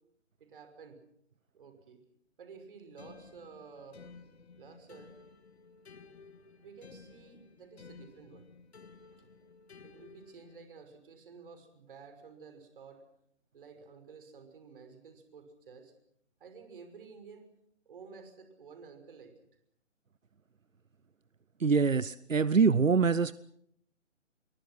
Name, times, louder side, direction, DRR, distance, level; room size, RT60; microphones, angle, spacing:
voice 1, 0.4-1.0 1.5-2.0 2.4-4.0 4.6-5.1 6.6-8.5 9.8-13.0 13.5-15.9 16.4-17.5 17.9-19.3, right 5 dB, 45° right, 7 dB, 6.1 m, -52 dB
sound 1, 3.0-10.7, left 5 dB, 55° left, 2.3 m, -54 dB
voice 2, 21.6-23.3, right 5 dB, 85° right, 18 dB, 0.8 m, -24 dB
27.0 x 23.0 x 6.2 m, 0.72 s
figure-of-eight pair, 145°, 38 cm